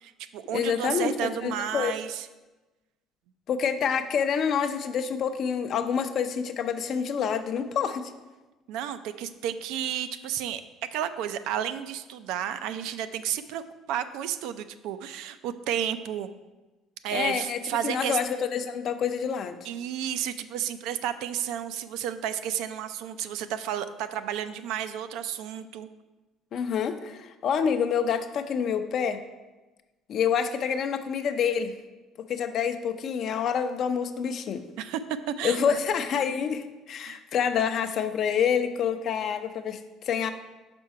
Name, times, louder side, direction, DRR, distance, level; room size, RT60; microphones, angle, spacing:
voice 1, 0.0-2.3 8.7-10.6 10.9-16.3 17.0-18.2 19.6-25.9 34.8-35.0 35.3-35.8 37.1-37.2, right 10 dB, 80° right, 11 dB, 0.3 m, -32 dB
voice 2, 0.5-1.9 3.5-8.1 17.1-19.6 26.5-29.2 30.1-31.8 32.3-34.6 35.4-40.3, left 7 dB, 55° left, 8 dB, 0.5 m, -27 dB
5.5 x 5.2 x 4.6 m, 1.1 s
cardioid pair, 110°, 0 cm